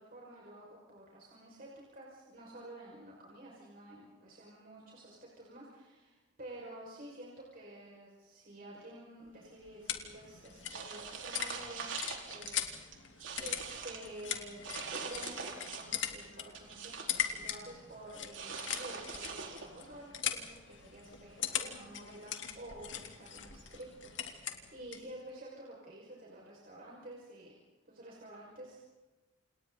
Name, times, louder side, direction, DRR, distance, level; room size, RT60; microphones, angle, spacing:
voice 1, 0.0-11.9 12.3-13.1 13.4-14.6 14.9-27.5 27.9-28.8, right 1 dB, 45° right, -4 dB, 6.0 m, -50 dB
sound 1, 9.3-25.1, left 9 dB, 70° left, 2.9 m, -41 dB
sound 2, 10.7-12.5 12.9-14.1 14.6-16.0 16.3-17.4 18.3-19.8, right 5 dB, 75° right, 4.5 m, -43 dB
29.5 x 29.0 x 4.1 m, 1.2 s
head